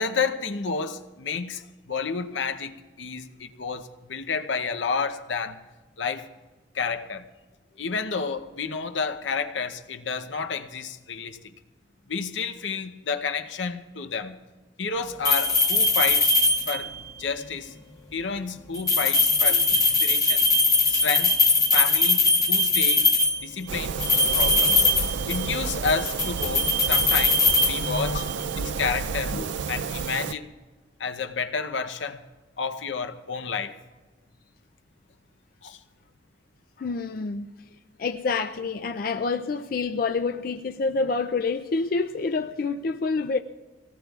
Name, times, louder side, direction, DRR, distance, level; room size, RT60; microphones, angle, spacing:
voice 1, 0.0-5.6 6.0-6.3 6.7-7.3 7.8-11.4 12.1-14.4 14.8-16.3 16.7-17.7 18.1-20.4 20.9-21.4 21.7-23.1 23.4-24.9 25.3-28.2 28.5-29.4 29.7-30.5 31.0-32.2 32.6-33.7 35.6-35.8, left 5 dB, 85° left, 0.8 m, -30 dB
sound 1, 15.2-17.0 18.7-23.5 24.0-25.6 25.9-28.3, left 2 dB, 20° left, 1.0 m, -21 dB
sound 2, 23.7-30.3, right 6 dB, 75° right, 0.4 m, -31 dB
voice 2, 27.8-28.4 29.3-29.5 36.8-37.7 38.0-43.4, left 4 dB, 50° left, 0.4 m, -28 dB
24.5 x 18.5 x 2.4 m
head